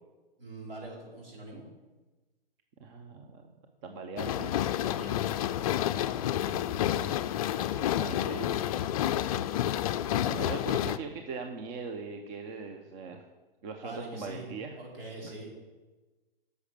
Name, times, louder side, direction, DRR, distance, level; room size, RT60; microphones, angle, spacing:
voice 1, 0.4-1.7 4.9-5.5 13.8-15.5, right 2 dB, 70° right, -2 dB, 4.3 m, -43 dB
voice 2, 2.8-3.5 3.8-4.5 6.5-7.2 7.7-8.5 10.3-13.2 13.6-14.8 15.2-15.3, right 4 dB, 35° right, 5 dB, 0.9 m, -41 dB
sound 1, 4.2-11.0, left 11 dB, 40° left, 0.4 m, -29 dB
9.9 x 6.6 x 6.7 m, 1.2 s
figure-of-eight pair, 120°, 30 cm